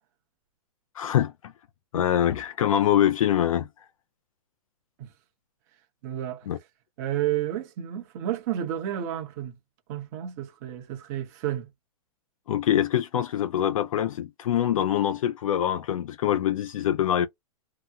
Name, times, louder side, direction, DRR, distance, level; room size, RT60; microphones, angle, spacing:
voice 1, 1.0-1.5 1.9-3.7 6.5-6.6 12.5-17.3, left 11 dB, 60° left, 0.4 m, -24 dB
voice 2, 6.0-6.5 7.0-9.5 9.9-11.7, right 11 dB, 25° right, 0.9 m, -31 dB
2.8 x 2.0 x 3.5 m
hypercardioid pair, 175°, 19 cm